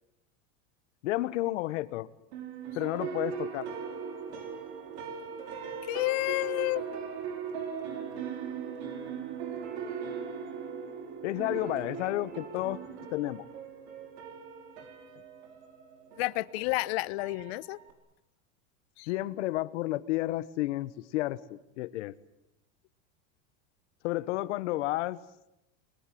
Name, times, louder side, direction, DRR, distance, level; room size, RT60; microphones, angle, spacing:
voice 1, 1.0-2.1 2.7-3.7 11.2-12.8 13.1-13.4 19.1-22.1 24.0-25.2, left 17 dB, 80° left, 15 dB, 1.4 m, -31 dB
sound 1, 2.3-17.9, right 7 dB, 65° right, 5.4 m, -39 dB
voice 2, 5.9-6.8 16.2-17.8 19.0-19.1, left 22 dB, 60° left, 18 dB, 1.0 m, -30 dB
30.0 x 22.0 x 7.8 m, 0.87 s
supercardioid pair, 160°, 36 cm